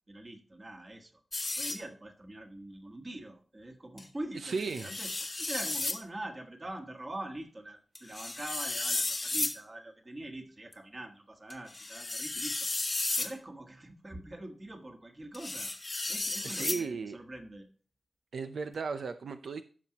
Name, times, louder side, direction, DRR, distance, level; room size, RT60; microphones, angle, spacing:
voice 1, 0.1-1.2 1.6-15.7 16.1-17.7, right 1 dB, 25° right, 4 dB, 1.6 m, -44 dB
sound 1, 1.3-1.8 4.0-4.1 4.5-6.0 7.9-9.6 10.7-10.8 11.5-13.3 15.3-16.8, left 2 dB, 25° left, 1.0 m, -34 dB
voice 2, 4.4-4.9 16.4-17.2 18.3-19.6, right 4 dB, 75° right, 8 dB, 0.6 m, -35 dB
15.5 x 6.2 x 3.0 m, 0.39 s
wide cardioid pair, 170°, 0 cm